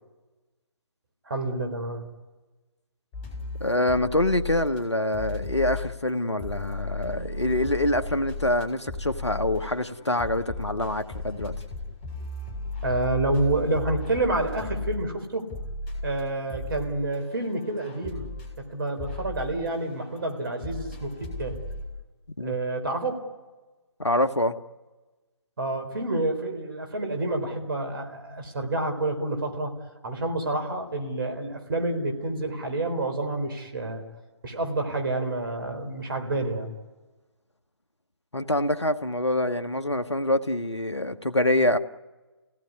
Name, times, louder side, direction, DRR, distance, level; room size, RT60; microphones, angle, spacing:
voice 1, 1.3-2.0 12.8-15.5 16.0-18.3 18.6-21.6 22.4-23.2 25.6-29.7 30.0-34.0 34.4-36.7, right 2 dB, 55° right, 5 dB, 4.3 m, -28 dB
sound 1, 3.1-4.8 5.1-21.8, left 3 dB, 20° left, 6.2 m, -36 dB
voice 2, 3.6-11.5 22.4-22.5 24.0-24.6 38.3-41.8, left 1 dB, 90° left, 9 dB, 1.4 m, -25 dB
29.5 x 17.5 x 9.7 m, 1.2 s
figure-of-eight pair, 145°, 14 cm